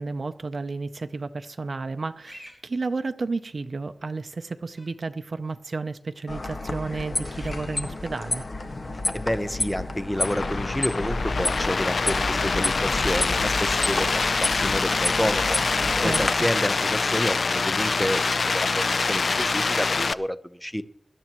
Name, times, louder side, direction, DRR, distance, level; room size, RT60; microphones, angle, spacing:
voice 1, 0.0-8.4 15.9-16.5, right 3 dB, 65° right, 0.6 m, -32 dB
sound 1, 2.2-2.6 4.8-4.9 7.4-7.8 10.2-10.3 12.0-12.1, equal, 25° left, 6.9 m, -45 dB
sound 2, 6.3-16.3, left 2 dB, 55° left, 1.6 m, -30 dB
voice 2, 9.1-15.6 16.0-20.8, equal, 10° left, 0.9 m, -29 dB
sound 3, 10.2-20.1, left 4 dB, 75° left, 0.4 m, -25 dB
24.5 x 12.0 x 3.1 m
wide cardioid pair, 75°, 0 cm